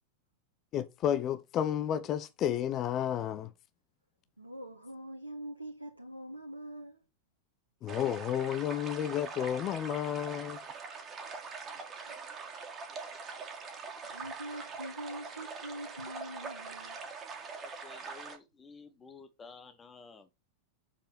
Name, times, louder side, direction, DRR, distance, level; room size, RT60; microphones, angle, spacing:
voice 1, 0.7-3.5 7.8-10.6, left 10 dB, 35° left, 0.9 m, -31 dB
voice 2, 4.4-7.0 11.9-12.4 14.0-17.0, right 1 dB, 85° right, 1.4 m, -44 dB
sound 1, 7.9-18.4, right 5 dB, 25° right, 2.3 m, -43 dB
voice 3, 17.6-20.3, left 4 dB, 15° left, 1.4 m, -53 dB
7.3 x 7.2 x 4.2 m
figure-of-eight pair, 90°, 0 cm